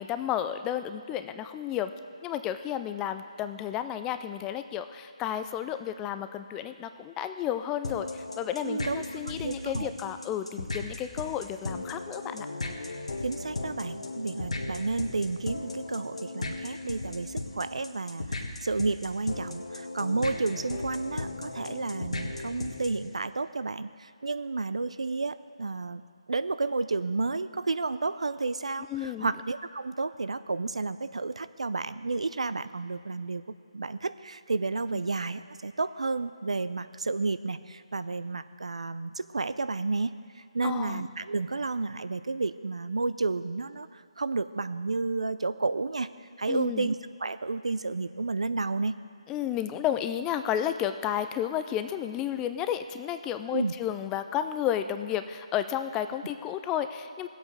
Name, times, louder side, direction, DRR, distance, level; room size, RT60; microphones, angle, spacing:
voice 1, 0.0-1.9 2.2-12.5 28.9-29.3 40.6-41.0 46.5-46.9 49.3-57.3, left 10 dB, 15° left, 10 dB, 0.3 m, -32 dB
sound 1, 7.8-23.1, left 2 dB, 75° left, 1.6 m, -36 dB
voice 2, 8.6-9.0 9.4-9.9 13.2-26.0 26.3-33.4 33.7-46.1 46.4-48.9 53.5-53.7, right 3 dB, 75° right, 13 dB, 0.5 m, -31 dB
17.5 x 8.1 x 4.8 m, 2.1 s
figure-of-eight pair, 155°, 3 cm